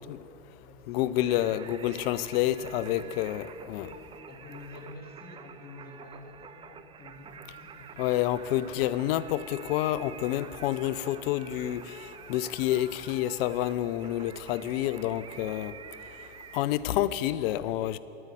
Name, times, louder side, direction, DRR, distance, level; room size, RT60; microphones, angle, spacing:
voice 1, 0.0-1.6 2.5-3.1 3.6-8.0, left 2 dB, 30° left, 2 dB, 1.9 m, -49 dB
voice 2, 0.9-3.9 8.0-11.9 12.3-15.7 16.5-18.0, left 13 dB, 65° left, 16 dB, 0.5 m, -28 dB
Singing, 1.2-16.6, right 7 dB, 15° right, 0.3 m, -48 dB
9.6 x 7.7 x 8.3 m, 3.0 s
hypercardioid pair, 90°, 33 cm